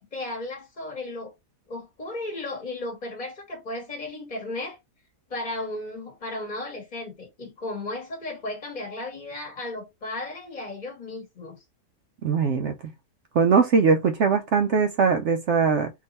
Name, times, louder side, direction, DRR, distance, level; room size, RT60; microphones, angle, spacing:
voice 1, 0.0-1.3 1.7-4.8 5.3-11.6, left 2 dB, 30° left, 1.5 m, -35 dB
voice 2, 12.2-12.7 13.3-15.9, right 5 dB, 65° right, 0.7 m, -21 dB
3.5 x 2.8 x 4.0 m
omnidirectional pair, 1.7 m